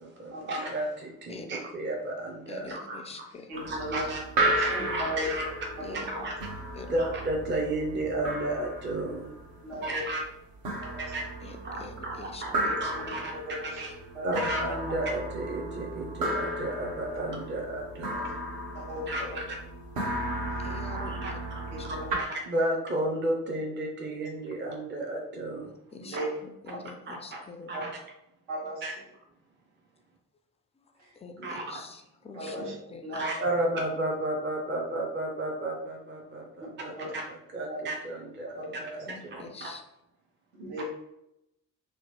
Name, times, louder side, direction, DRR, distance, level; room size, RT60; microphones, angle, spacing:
voice 1, 0.2-3.0 3.6-4.2 4.6-5.5 5.9-6.4 6.9-9.3 9.8-10.2 11.0-11.3 11.6-12.5 12.8-13.9 14.2-18.4 19.1-19.6 20.9-21.3 21.9-25.7 26.1-26.3 27.1-27.4 27.7-27.9 28.8-28.9 31.4-31.8 33.1-39.7 40.8-40.9, right 1 dB, 25° right, 0 dB, 0.7 m, -33 dB
voice 2, 2.5-3.5 5.8-6.1 6.7-7.0 11.4-12.8 20.6-21.4 21.8-21.9 25.6-27.7 31.1-32.6 32.9-33.0 39.1-39.8, left 4 dB, 15° left, 5 dB, 0.3 m, -45 dB
sound 1, 3.5-22.2, right 1 dB, 50° right, 0.9 m, -34 dB
voice 3, 3.5-4.0 4.4-5.3 5.8-6.2 9.6-10.1 10.8-11.1 12.6-13.0 13.3-13.8 14.1-14.5 18.7-19.4 20.5-20.7 21.7-22.2 26.0-26.3 27.7-27.8 28.5-28.8 31.0-31.5 32.3-32.7 33.0-33.2 36.8-37.1 37.7-37.8 38.6-39.0 40.5-40.8, equal, 70° right, -6 dB, 1.5 m, -37 dB
2.9 x 2.1 x 3.0 m, 0.84 s
figure-of-eight pair, 45°, 44 cm